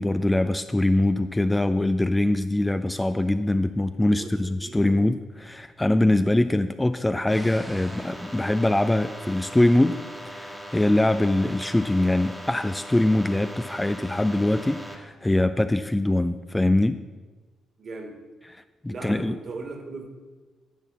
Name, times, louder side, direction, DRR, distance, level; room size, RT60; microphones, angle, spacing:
voice 1, 0.0-10.0 10.3-17.0 18.8-19.4, left 1 dB, 10° left, 10 dB, 0.3 m, -23 dB
voice 2, 4.1-5.0 17.8-18.3 18.9-20.1, right 3 dB, 45° right, 4 dB, 1.6 m, -38 dB
sound 1, 7.3-15.0, equal, 10° right, 1.3 m, -40 dB
10.5 x 4.2 x 7.3 m, 1.3 s
cardioid pair, 90°, 0 cm